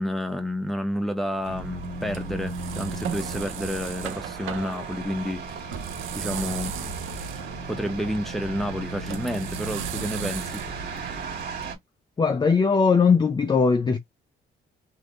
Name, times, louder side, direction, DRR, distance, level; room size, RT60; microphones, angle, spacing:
voice 1, 0.0-5.8 6.1-6.9 7.7-10.6, equal, ahead, 1.0 m, -30 dB
sound 1, 1.3-11.7, right 8 dB, 85° right, 0.6 m, -37 dB
sound 2, 1.5-11.8, right 3 dB, 60° right, 1.8 m, -36 dB
voice 2, 12.2-14.0, left 5 dB, 25° left, 0.5 m, -19 dB
3.2 x 2.7 x 2.4 m
cardioid pair, 90°, 20 cm